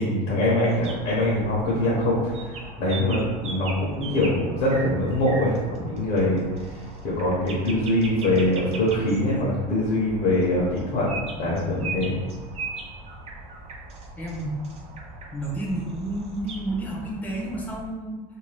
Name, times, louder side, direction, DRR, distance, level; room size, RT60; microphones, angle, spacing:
voice 1, 0.0-6.4 7.0-12.1, left 1 dB, 55° left, -6 dB, 0.9 m, -23 dB
sound 1, 0.7-17.9, right 3 dB, 30° right, 0.4 m, -39 dB
voice 2, 14.2-14.6 15.3-18.2, right 1 dB, 5° left, -4 dB, 0.7 m, -31 dB
2.7 x 2.2 x 3.3 m, 1.4 s
supercardioid pair, 130°, 21 cm